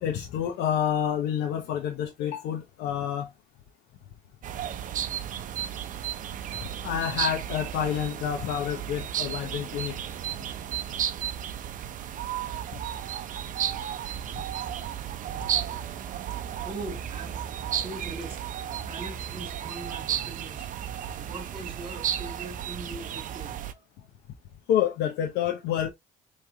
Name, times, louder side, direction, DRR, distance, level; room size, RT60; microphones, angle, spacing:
voice 1, 0.0-3.3 6.6-10.0 24.7-25.9, left 9 dB, 85° left, 0.8 m, -28 dB
sound 1, 4.4-23.7, right 10 dB, 50° right, 0.6 m, -33 dB
voice 2, 16.6-17.4 17.7-20.7 21.1-23.8, right 2 dB, 30° right, 2.2 m, -41 dB
4.9 x 3.2 x 2.7 m
cardioid pair, 110°, 17 cm